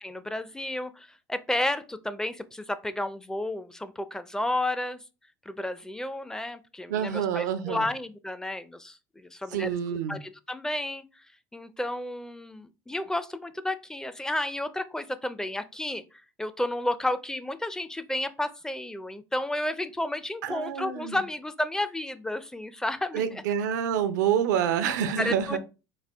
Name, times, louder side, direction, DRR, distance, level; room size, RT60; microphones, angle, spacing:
voice 1, 0.0-5.0 5.5-11.3 11.5-23.4 25.1-25.6, left 1 dB, 5° left, 0.4 m, -32 dB
voice 2, 6.9-7.9 9.5-10.2 20.4-21.2 23.1-25.6, right 8 dB, 85° right, 0.6 m, -27 dB
4.2 x 2.3 x 3.4 m
hypercardioid pair, 80°, 9 cm